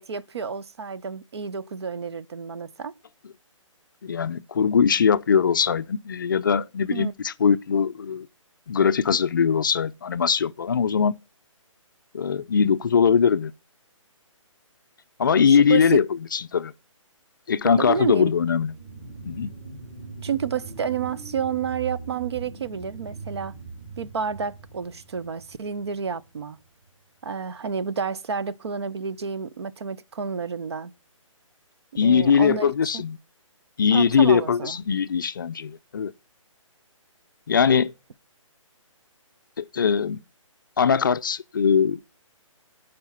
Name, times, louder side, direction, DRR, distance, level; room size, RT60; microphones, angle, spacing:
voice 1, 0.0-2.9 6.9-7.1 15.5-16.0 17.8-18.3 20.2-23.5 24.0-26.6 27.2-30.9 32.0-33.0 33.9-34.8, right 6 dB, 50° right, 0.6 m, -30 dB
voice 2, 4.0-8.3 8.7-11.2 12.1-13.5 15.2-16.7 17.5-18.7 19.3-19.5 32.0-33.2 33.8-36.1 37.5-37.9 39.6-40.2 40.8-42.0, left 6 dB, 40° left, 0.4 m, -21 dB
sound 1, 17.9-26.9 27.3-27.4, right 4 dB, 35° right, 3.4 m, -41 dB
10.5 x 4.8 x 5.6 m
hypercardioid pair, 170°, 17 cm